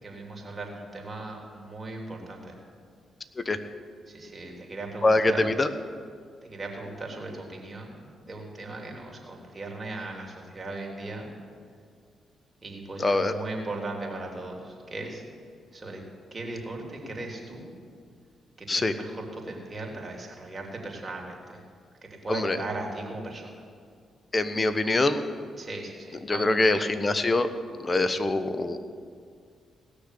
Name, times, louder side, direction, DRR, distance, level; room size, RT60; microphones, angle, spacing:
voice 1, 0.0-2.6 4.1-5.5 6.4-11.3 12.6-15.2 15.7-16.0 16.3-17.7 18.6-21.6 22.0-23.6 25.6-26.7, right 2 dB, 35° right, 0 dB, 3.5 m, -38 dB
voice 2, 5.0-5.7 13.0-13.3 18.7-18.9 22.3-22.6 24.3-25.2 26.3-27.5 27.8-28.8, left 2 dB, 35° left, 11 dB, 1.1 m, -24 dB
17.5 x 6.7 x 8.5 m, 2.1 s
supercardioid pair, 50°, 0 cm